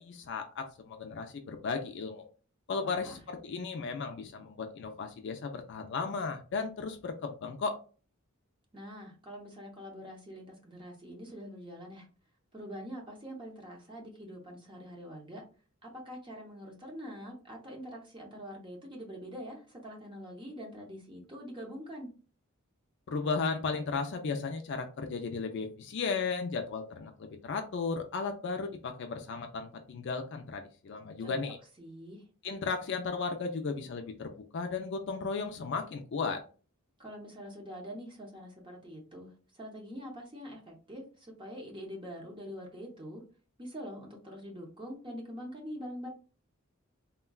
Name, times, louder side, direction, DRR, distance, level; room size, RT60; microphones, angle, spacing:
voice 1, 0.0-2.3 2.7-7.8 23.1-31.6 32.4-36.4, left 4 dB, 55° left, 5 dB, 0.4 m, -35 dB
voice 2, 2.8-3.2 8.7-12.1 12.5-15.4 15.8-22.1 31.2-31.4 31.8-32.2 37.0-43.2 43.6-46.1, equal, 25° right, -1 dB, 0.8 m, -44 dB
3.6 x 2.2 x 2.3 m, 0.36 s
head